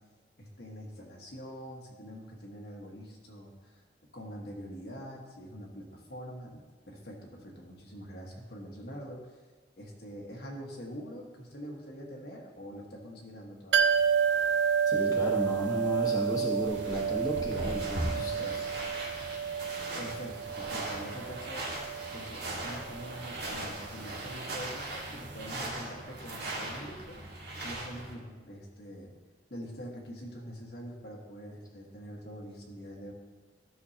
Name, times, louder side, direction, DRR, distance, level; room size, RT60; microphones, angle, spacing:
voice 1, 0.4-3.8 4.1-9.4 9.8-14.0 18.1-18.8 20.0-21.6 22.1-29.1 29.5-33.1, equal, 65° left, -2 dB, 1.5 m, -44 dB
sound 1, 13.7-25.3 25.6-25.7, right 7 dB, 85° right, 0.6 m, -31 dB
voice 2, 14.9-18.5, equal, 20° left, -3 dB, 1.3 m, -34 dB
sound 2, 16.6-28.1, right 1 dB, 70° right, 1.7 m, -39 dB
13.0 x 6.5 x 2.8 m, 1.4 s
head